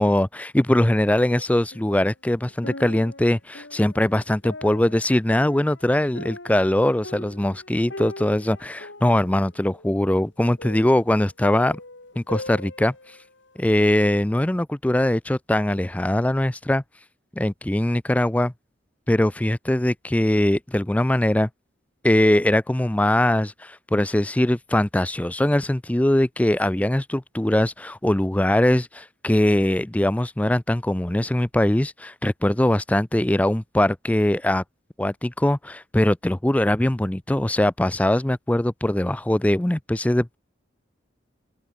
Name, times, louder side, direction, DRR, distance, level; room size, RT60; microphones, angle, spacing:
voice 1, 0.0-11.8 12.2-12.9 13.6-16.8 17.4-18.5 19.1-21.5 22.0-34.6 35.0-40.4, left 1 dB, 10° left, 0.4 m, -21 dB
sound 1, 1.2-2.1 2.4-13.5 14.0-14.1, left 2 dB, 90° left, 5.5 m, -41 dB
open air
head